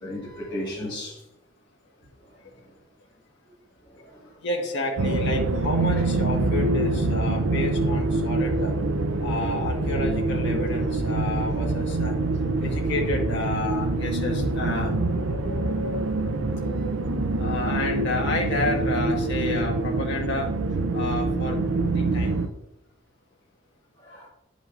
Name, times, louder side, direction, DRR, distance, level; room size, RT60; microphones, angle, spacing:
voice 1, 0.0-1.2 4.0-4.2 5.9-6.0 7.5-7.6 9.5-9.6 15.8-15.9 24.0-24.3, left 1 dB, 20° left, 1.7 m, -35 dB
voice 2, 4.4-8.7 9.2-12.1 12.6-14.9 17.4-20.5 20.9-21.6 21.9-22.3, left 2 dB, 60° left, 1.6 m, -30 dB
sound 1, 5.0-22.5, right 2 dB, 85° right, 0.6 m, -25 dB
10.5 x 5.1 x 2.5 m
head